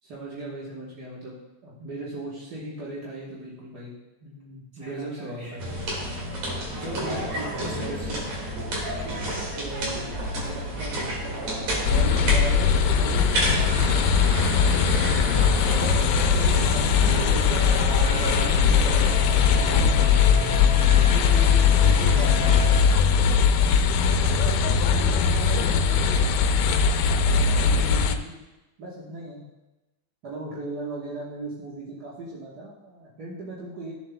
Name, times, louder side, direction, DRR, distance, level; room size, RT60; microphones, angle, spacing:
voice 1, 0.0-1.4 1.6-4.0 4.2-5.7 6.8-8.3 9.0-9.3 9.6-10.0 10.5-15.3 16.2-20.1 20.7-22.6 24.7-25.3 25.7-26.0 27.3-28.4 28.8-29.4 30.2-33.9, right 2 dB, 50° right, -7 dB, 1.3 m, -38 dB
voice 2, 4.8-5.6 6.6-8.2 8.9-9.5 16.1-16.8 21.0-21.4 24.9-26.6 27.2-27.9, equal, 25° right, -6 dB, 3.6 m, -41 dB
sound 1, 5.6-22.8, right 1 dB, 70° right, 3.4 m, -30 dB
sound 2, 11.8-28.2, left 6 dB, 85° left, 2.0 m, -20 dB
15.0 x 7.4 x 2.2 m, 1.0 s
omnidirectional pair, 3.4 m